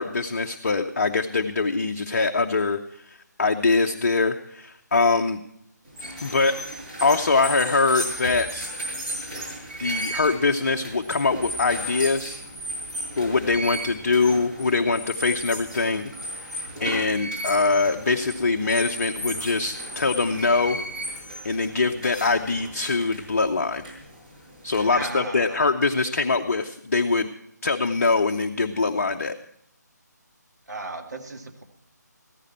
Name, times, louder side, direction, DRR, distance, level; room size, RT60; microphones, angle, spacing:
voice 1, 0.0-2.8 3.0-5.4 6.2-6.6 7.0-8.7 9.8-12.4 13.2-16.1 16.8-20.8 21.4-23.8 24.6-27.3 27.6-29.3, left 3 dB, 45° left, 5 dB, 0.7 m, -23 dB
sound 1, 5.9-25.1, equal, 25° right, 5.8 m, -35 dB
voice 2, 24.9-25.7 30.7-31.6, right 2 dB, 70° right, 2 dB, 2.1 m, -35 dB
15.0 x 14.5 x 4.3 m, 0.74 s
figure-of-eight pair, 150°, 10 cm